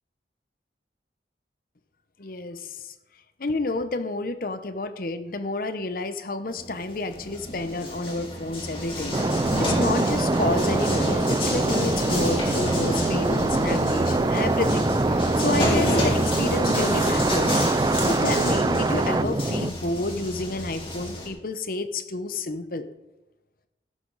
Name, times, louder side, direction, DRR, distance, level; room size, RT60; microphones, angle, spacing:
voice 1, 2.2-2.9 3.4-17.7 18.0-22.9, left 2 dB, 50° left, 10 dB, 0.9 m, -30 dB
sound 1, 6.5-21.3, left 1 dB, 30° left, 3.1 m, -29 dB
sound 2, 9.1-19.7, right 2 dB, 20° right, 0.3 m, -24 dB
16.5 x 8.9 x 4.1 m, 0.97 s
head